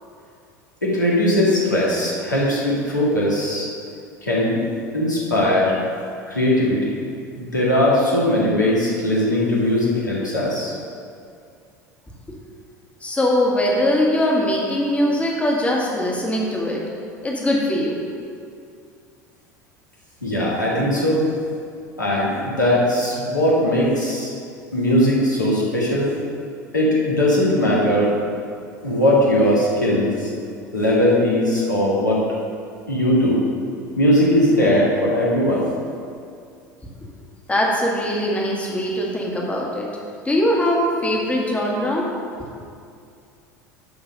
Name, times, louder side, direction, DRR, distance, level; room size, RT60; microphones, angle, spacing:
voice 1, 0.8-3.7 4.2-4.6 4.9-5.7 6.3-6.9 7.4-10.7 20.2-21.4 22.0-24.3 24.7-26.1 26.7-28.1 28.8-30.3 30.7-32.2 32.9-33.4 34.0-35.7, left 1 dB, 85° left, -6 dB, 2.0 m, -19 dB
voice 2, 13.0-16.8 17.2-18.0 37.5-39.9 40.3-42.1, left 1 dB, 15° left, -2 dB, 1.8 m, -21 dB
11.5 x 4.0 x 5.2 m, 2.4 s
figure-of-eight pair, 70°, 10 cm